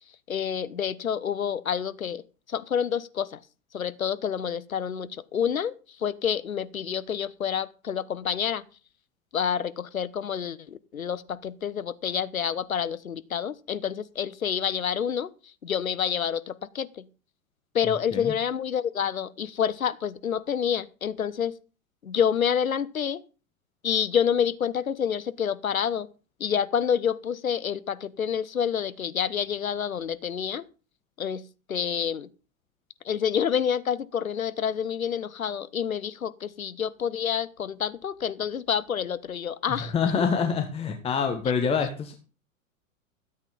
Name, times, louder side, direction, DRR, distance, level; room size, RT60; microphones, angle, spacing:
voice 1, 0.3-2.2 2.5-3.4 3.7-5.7 6.0-8.6 9.3-15.3 15.6-17.0 17.7-21.5 22.0-23.2 23.8-26.1 26.4-30.6 31.2-31.4 31.7-32.3 33.0-39.9, left 8 dB, 75° left, 0.9 m, -28 dB
voice 2, 39.7-42.1, left 6 dB, 15° left, 1.3 m, -26 dB
13.0 x 8.2 x 5.3 m
figure-of-eight pair, 100°, 42 cm